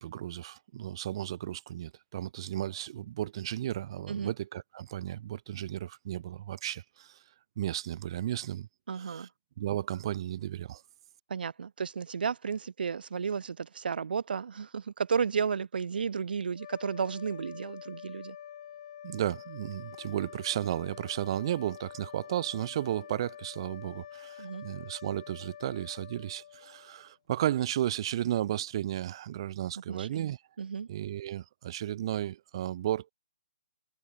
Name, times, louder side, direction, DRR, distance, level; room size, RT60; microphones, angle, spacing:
voice 1, 0.0-7.2 7.6-8.7 8.9-9.3 9.6-10.8 19.0-30.4 30.9-33.1, right 12 dB, 30° right, 0.5 m, -34 dB
voice 2, 8.9-9.3 11.3-18.4 24.4-24.6 29.9-30.3 30.6-30.9, right 6 dB, 70° right, 0.6 m, -33 dB
sound 1, 16.5-27.1, left 10 dB, 40° left, 1.8 m, -47 dB
hypercardioid pair, 170°, 5 cm